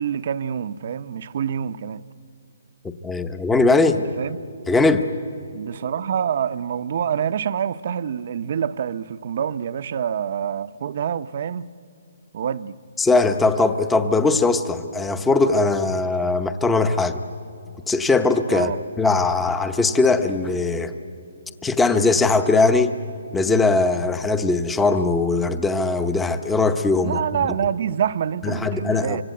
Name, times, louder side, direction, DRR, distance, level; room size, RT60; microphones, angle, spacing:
voice 1, 0.0-2.0 4.2-4.4 5.5-11.7 12.3-12.8 18.5-18.8 27.0-29.2, right 8 dB, 50° right, 0.7 m, -26 dB
voice 2, 3.0-4.0 4.7-5.1 13.0-17.2 17.9-18.7 19.0-20.9 21.6-22.9 23.3-27.2 28.4-29.2, left 3 dB, 5° left, 0.9 m, -20 dB
25.5 x 24.5 x 9.2 m
hypercardioid pair, 165°, 0 cm